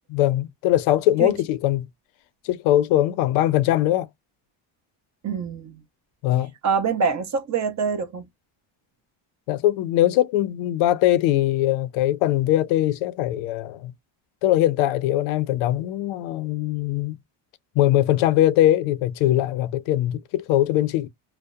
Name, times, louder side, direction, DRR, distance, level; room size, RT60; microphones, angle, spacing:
voice 1, 0.1-1.9 2.4-4.1 6.2-6.5 9.5-13.9 14.4-17.2 17.8-21.1, left 13 dB, 85° left, 0.6 m, -21 dB
voice 2, 5.2-5.8 6.6-8.3, right 5 dB, 35° right, 0.7 m, -25 dB
2.6 x 2.1 x 2.2 m
cardioid pair, 105°, 49 cm